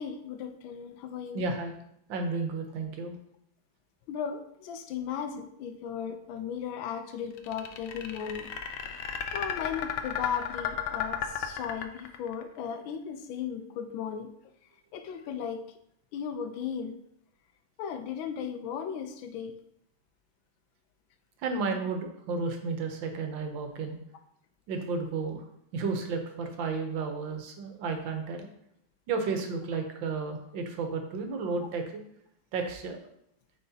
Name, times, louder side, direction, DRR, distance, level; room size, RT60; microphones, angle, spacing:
voice 1, 0.0-1.4 4.1-8.5 9.3-14.3 14.9-15.6 16.1-16.9 17.8-19.5, left 7 dB, 90° left, 8 dB, 1.5 m, -36 dB
voice 2, 1.3-1.8 2.1-3.2 21.4-24.0 24.7-25.4 25.7-28.5 29.1-32.0 32.5-33.0, right 4 dB, 75° right, 5 dB, 1.6 m, -32 dB
sound 1, 7.4-12.4, left 8 dB, 70° left, 1.1 m, -33 dB
9.3 x 4.3 x 2.7 m, 0.72 s
omnidirectional pair, 2.1 m